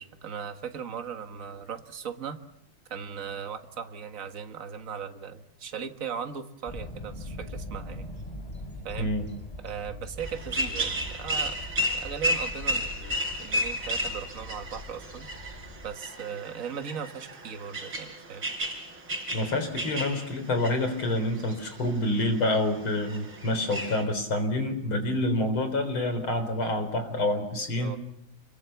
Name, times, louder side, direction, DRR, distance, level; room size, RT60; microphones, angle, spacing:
voice 1, 0.0-2.4 2.9-8.1 8.8-9.1 9.6-11.6 11.9-15.3 15.8-18.5 27.8-28.0, right 7 dB, 45° right, 7 dB, 1.9 m, -38 dB
sound 1, 6.6-16.0, left 1 dB, 15° left, 4.4 m, -42 dB
sound 2, 10.2-24.0, equal, 75° right, 4.7 m, -33 dB
voice 2, 19.3-28.0, left 1 dB, 85° left, 8 dB, 4.9 m, -27 dB
28.5 x 22.5 x 7.1 m, 0.77 s
omnidirectional pair, 2.2 m